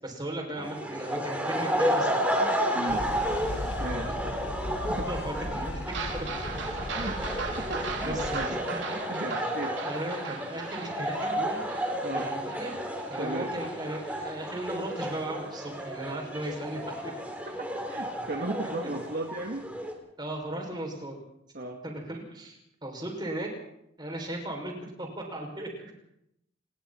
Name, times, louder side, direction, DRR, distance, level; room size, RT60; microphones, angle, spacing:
voice 1, 0.0-2.3 2.7-3.0 3.9-4.2 5.1-5.7 6.1-6.3 8.0-8.6 9.3-9.4 9.8-11.7 12.1-12.7 13.1-17.1 20.2-21.2 21.8-23.5 24.0-25.9, right 1 dB, 25° right, 1 dB, 6.2 m, -36 dB
sound 1, 0.6-19.9, equal, 10° right, 3.3 m, -32 dB
sound 2, 2.9-8.5, left 1 dB, 60° left, 1.8 m, -37 dB
voice 2, 3.8-4.1 4.7-5.1 6.9-7.3 7.6-8.6 9.1-9.7 12.0-12.3 13.2-13.5 17.6-19.7 21.5-21.8, right 2 dB, 55° right, 2 dB, 1.8 m, -35 dB
sound 3, 5.9-16.6 17.0-17.1 17.5-17.6 17.9-18.0, right 4 dB, 70° right, 3.6 m, -40 dB
30.0 x 20.0 x 4.4 m, 0.79 s
head